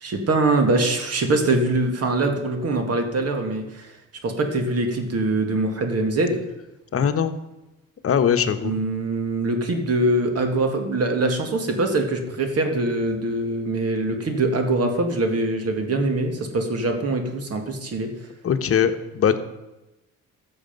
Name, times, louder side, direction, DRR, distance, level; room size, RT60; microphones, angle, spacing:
voice 1, 0.0-3.9 4.2-6.4 8.6-18.1, right 2 dB, 55° right, 5 dB, 2.1 m, -23 dB
voice 2, 6.9-7.3 8.0-8.8 18.4-19.4, left 8 dB, 50° left, 9 dB, 1.1 m, -21 dB
13.5 x 7.0 x 5.3 m, 0.99 s
cardioid pair, 90°, 30 cm